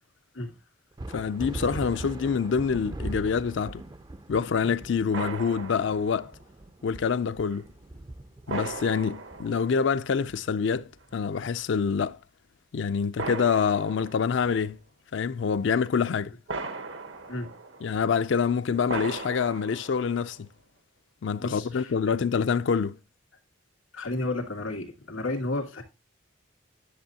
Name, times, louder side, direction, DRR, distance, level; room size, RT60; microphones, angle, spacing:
sound 1, 1.0-10.9, right 1 dB, 20° right, 0.4 m, -40 dB
voice 1, 1.1-3.8 4.3-6.3 6.8-7.7 8.5-12.2 12.7-14.8 15.1-16.3 17.8-20.5 21.2-23.0, left 6 dB, 65° left, 0.4 m, -26 dB
sound 2, 5.1-6.3 7.5-7.6 8.5-10.2 11.0-11.1 13.2-14.6 16.5-18.1 18.9-20.4, right 3 dB, 70° right, 1.1 m, -38 dB
voice 2, 21.4-21.9 23.9-25.8, left 2 dB, 90° left, 1.9 m, -32 dB
10.5 x 6.8 x 2.7 m
head